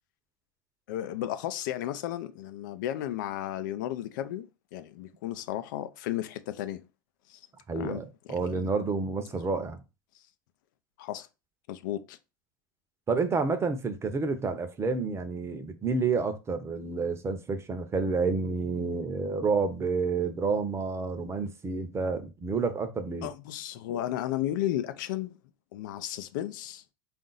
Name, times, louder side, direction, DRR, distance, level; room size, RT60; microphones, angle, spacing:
voice 1, 0.9-6.8 7.3-7.4 7.8-8.0 8.4-8.5 11.0-11.3 11.7-12.2 23.2-25.4 25.7-26.8, left 12 dB, 70° left, 0.5 m, -34 dB
voice 2, 7.7-9.8 13.1-23.3, right 4 dB, 25° right, 0.8 m, -29 dB
3.6 x 2.6 x 3.9 m
hypercardioid pair, 90°, 11 cm